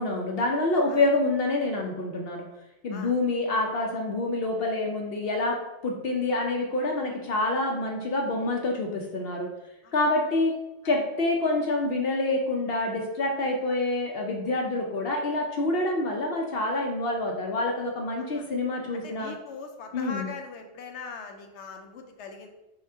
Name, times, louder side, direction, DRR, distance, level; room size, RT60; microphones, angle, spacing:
voice 1, 0.0-2.5 2.8-5.6 5.8-9.5 9.9-10.5 10.8-19.3 19.9-20.3, left 2 dB, 65° left, 1 dB, 0.8 m, -27 dB
voice 2, 18.9-22.5, left 4 dB, 90° left, 4 dB, 1.0 m, -41 dB
5.6 x 2.4 x 3.4 m, 0.97 s
omnidirectional pair, 1.1 m